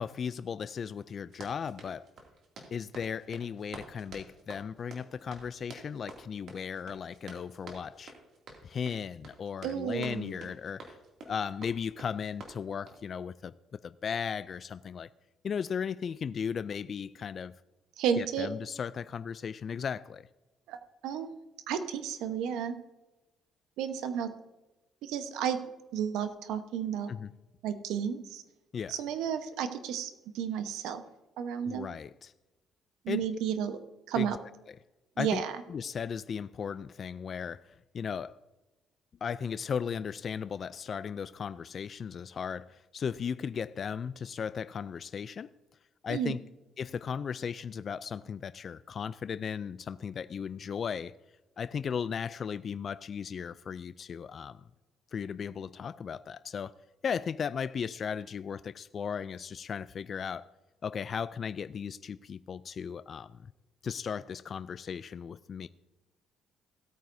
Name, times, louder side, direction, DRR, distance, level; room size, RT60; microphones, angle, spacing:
voice 1, 0.0-2.1 2.7-8.1 8.6-11.0 11.3-13.5 13.8-15.1 15.4-17.6 18.2-20.3 27.1-27.3 28.7-28.9 31.6-32.3 33.1-33.2 34.1-34.4 35.2-35.4 35.7-38.4 39.2-45.5 46.0-46.4 46.8-51.1 51.6-54.6 55.1-56.7 57.0-60.5 60.8-63.5 63.8-65.7, left 7 dB, 45° left, 0.3 m, -36 dB
Run, 1.2-13.1, right 3 dB, 60° right, 2.4 m, -50 dB
voice 2, 9.6-10.5 18.0-18.5 20.7-21.4 21.7-22.7 23.8-24.3 25.0-25.6 25.9-27.1 27.6-28.4 28.9-31.0 31.4-31.9 33.0-33.8 34.1-34.4 35.2-35.5 46.1-46.3, right 8 dB, 85° right, 1.0 m, -32 dB
17.0 x 9.0 x 2.7 m
cardioid pair, 95°, 0 cm